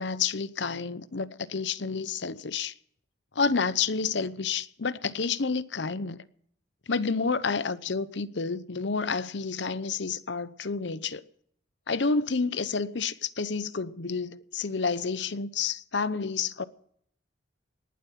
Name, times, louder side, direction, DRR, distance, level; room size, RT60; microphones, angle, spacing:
voice 1, 0.0-2.7 3.4-6.2 6.9-11.2 11.9-16.6, left 4 dB, 65° left, 0.8 m, -29 dB
19.0 x 11.5 x 5.9 m
head